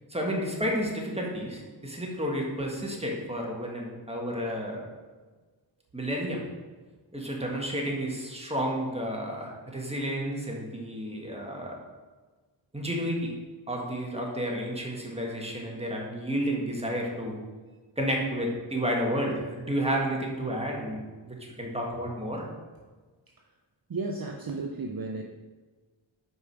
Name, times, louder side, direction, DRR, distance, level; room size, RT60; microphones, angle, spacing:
voice 1, 0.1-4.8 5.9-6.4 7.1-11.7 12.7-13.3 13.7-17.4 18.0-22.5, equal, 10° right, -1 dB, 1.6 m, -31 dB
voice 2, 23.9-25.2, right 3 dB, 45° right, 2 dB, 0.6 m, -33 dB
5.4 x 4.9 x 4.7 m, 1.3 s
cardioid pair, 40°, 48 cm